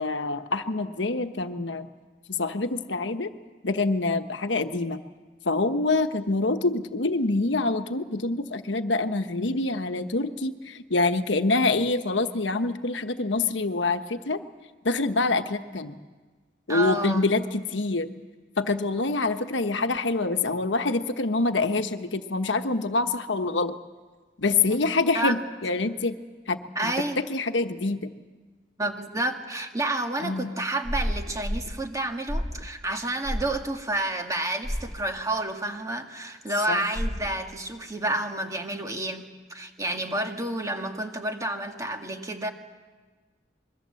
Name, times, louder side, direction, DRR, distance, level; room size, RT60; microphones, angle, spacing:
voice 1, 0.0-1.9 2.3-3.3 3.6-5.0 5.4-14.4 14.8-16.0 16.7-18.1 18.6-23.8 24.4-26.2 26.5-28.1 30.2-30.5 36.7-36.8, left 3 dB, 85° left, 8 dB, 1.2 m, -26 dB
voice 2, 16.7-17.2 25.1-25.4 26.8-27.2 28.8-42.5, right 1 dB, 20° right, 4 dB, 1.9 m, -30 dB
sound 1, 30.8-31.7 32.3-32.7 33.2-33.5 34.6-34.9 37.0-37.3, equal, 5° left, 1.2 m, -30 dB
26.0 x 22.5 x 7.7 m, 1.4 s
head